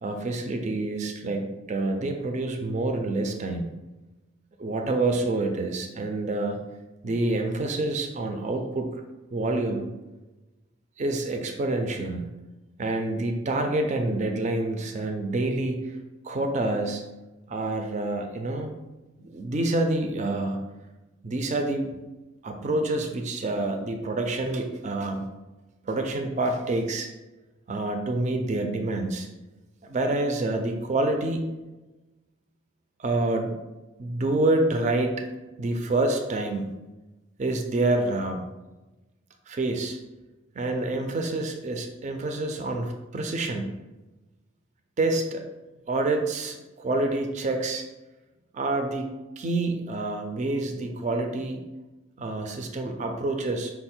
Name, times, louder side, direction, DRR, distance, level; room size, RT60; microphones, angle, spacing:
voice 1, 0.0-3.7 4.6-6.6 7.0-8.9 9.3-9.9 11.0-12.3 12.8-15.9 16.2-17.0 17.5-18.7 19.2-20.6 21.2-21.9 22.4-25.2 25.9-27.1 27.7-29.3 29.8-31.4 33.0-33.6 34.0-35.1 35.6-36.7 37.4-38.4 39.5-40.0 40.6-43.7 45.0-45.4 45.9-47.9 48.5-49.1 49.4-51.6 52.2-53.7, right 2 dB, 35° right, 4 dB, 0.4 m, -27 dB
5.4 x 2.1 x 4.2 m, 1.1 s
head